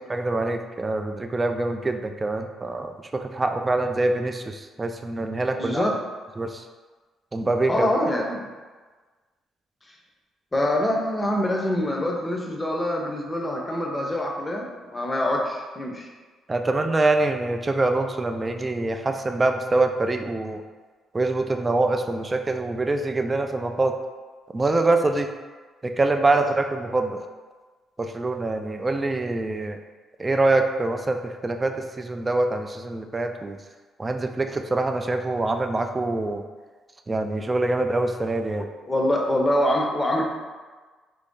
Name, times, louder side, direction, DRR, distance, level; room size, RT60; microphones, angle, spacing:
voice 1, 0.1-5.8 6.4-6.6 7.3-7.9 16.5-20.6 21.1-24.0 24.5-25.3 25.8-27.3 28.0-29.8 30.2-33.6 34.0-36.4 37.1-38.7, right 2 dB, 25° right, 6 dB, 0.3 m, -24 dB
voice 2, 5.5-6.0 7.7-8.5 10.5-16.1 38.6-40.2, left 1 dB, 20° left, 0 dB, 0.6 m, -25 dB
3.1 x 2.6 x 3.6 m, 1.4 s
cardioid pair, 90°, 0 cm